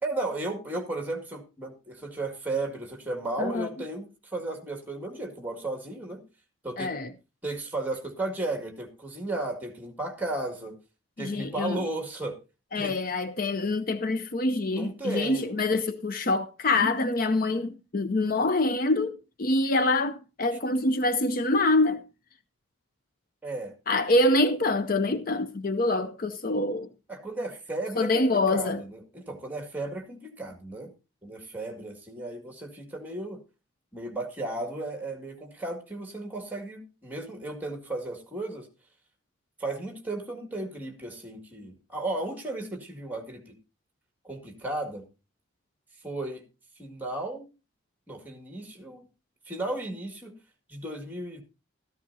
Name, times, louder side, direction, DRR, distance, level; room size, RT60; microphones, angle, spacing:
voice 1, 0.0-6.2 6.6-6.9 7.4-10.8 11.2-12.4 12.8-13.0 14.7-15.6 23.4-23.7 27.1-30.9 31.2-33.4 33.9-38.7 39.6-43.5 44.2-45.0 46.0-46.4 46.8-47.5 48.1-49.1 49.5-50.3 50.7-51.4, right 2 dB, 10° right, 2.0 m, -34 dB
voice 2, 3.4-3.7 6.8-7.1 11.2-11.8 12.7-22.0 23.9-26.9 28.0-28.8, left 2 dB, 45° left, 0.6 m, -25 dB
14.0 x 13.5 x 2.7 m
head